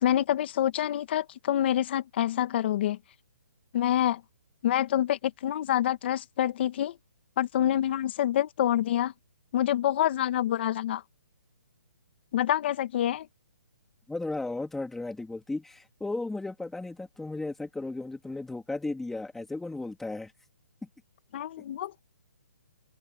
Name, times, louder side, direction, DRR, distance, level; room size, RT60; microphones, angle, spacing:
voice 1, 0.0-3.0 3.7-4.2 4.6-6.9 7.4-9.1 9.5-11.0 12.3-13.3 21.3-21.9, left 12 dB, 40° left, 1.7 m, -26 dB
voice 2, 14.1-20.3, left 2 dB, 5° left, 2.8 m, -35 dB
open air
hypercardioid pair, 160°, 9 cm